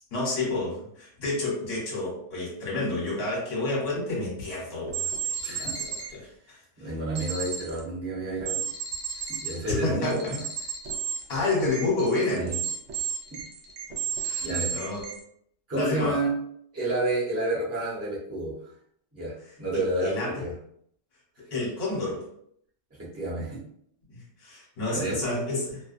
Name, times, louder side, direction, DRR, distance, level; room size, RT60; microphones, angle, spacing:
voice 1, 0.1-6.3 9.7-10.3 11.3-12.4 14.2-15.1 15.7-16.2 19.7-20.4 21.5-22.2 24.4-25.8, left 2 dB, 55° left, -4 dB, 1.1 m, -29 dB
sound 1, 4.5-4.6 4.9-6.1 7.2-7.8 8.4-9.6 10.0-15.2, right 6 dB, 75° right, 0.9 m, -33 dB
voice 2, 5.4-5.7 6.8-8.6 9.3-10.4 12.3-12.6 14.4-14.7 15.7-16.3 16.7-18.5 19.1-20.5 23.0-23.6 24.9-25.2, right 2 dB, 15° right, -7 dB, 0.7 m, -30 dB
2.5 x 2.2 x 2.5 m, 0.68 s
omnidirectional pair, 1.3 m